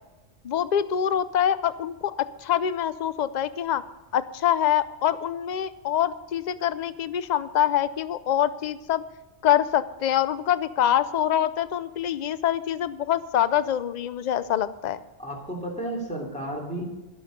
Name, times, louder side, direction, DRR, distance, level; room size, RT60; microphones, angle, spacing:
voice 1, 0.4-3.8 4.1-9.0 9.4-15.0, left 10 dB, 50° left, 14 dB, 0.6 m, -25 dB
voice 2, 15.2-16.8, right 1 dB, 5° left, -2 dB, 3.0 m, -32 dB
12.0 x 11.5 x 5.2 m, 1.1 s
omnidirectional pair, 1.2 m